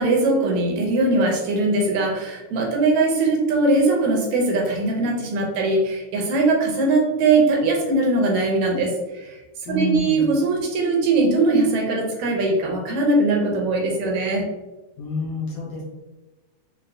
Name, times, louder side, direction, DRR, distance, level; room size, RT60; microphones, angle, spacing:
voice 1, 0.0-8.9 9.2-9.4 9.7-14.4, right 2 dB, 80° right, 1 dB, 2.1 m, -20 dB
voice 2, 9.6-10.3 15.0-15.8, equal, 70° left, -4 dB, 1.7 m, -27 dB
5.2 x 2.5 x 2.6 m, 1.1 s
omnidirectional pair, 3.4 m